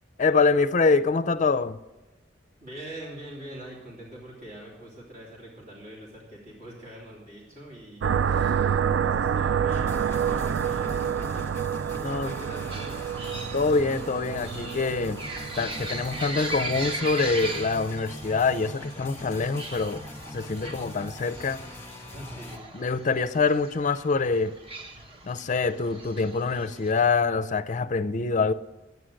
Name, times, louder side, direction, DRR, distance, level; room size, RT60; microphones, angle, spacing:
voice 1, 0.2-1.8 12.0-12.3 13.5-15.2 15.6-20.0 20.3-21.6 22.7-24.5 25.2-28.5, left 4 dB, 40° left, 14 dB, 0.5 m, -25 dB
voice 2, 2.6-13.0 22.1-22.7, right 1 dB, 45° right, -5 dB, 3.0 m, -44 dB
sound 1, 8.0-17.6, right 8 dB, 75° right, 0.3 m, -28 dB
sound 2, 9.7-22.6, left 1 dB, 15° left, 1.3 m, -41 dB
sound 3, 12.7-26.9, right 2 dB, 30° right, 1.0 m, -39 dB
11.5 x 9.4 x 6.4 m, 1.1 s
head